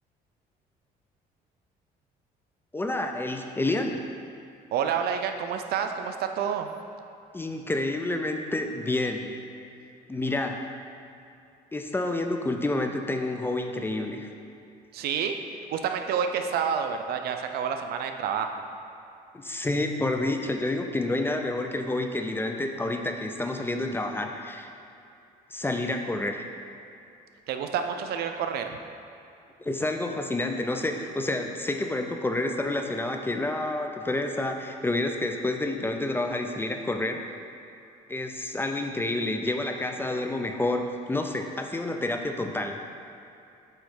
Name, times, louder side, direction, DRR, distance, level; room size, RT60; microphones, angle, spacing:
voice 1, 2.7-4.0 7.3-9.3 10.1-10.7 11.7-14.3 19.3-24.7 25.5-26.5 29.6-37.2 38.1-42.8, left 2 dB, 15° left, 4 dB, 0.4 m, -29 dB
voice 2, 4.7-6.7 14.9-15.4 15.7-18.5 27.5-28.8, right 7 dB, 70° right, 6 dB, 0.5 m, -28 dB
7.6 x 3.1 x 4.9 m, 2.7 s
cardioid pair, 110°, 17 cm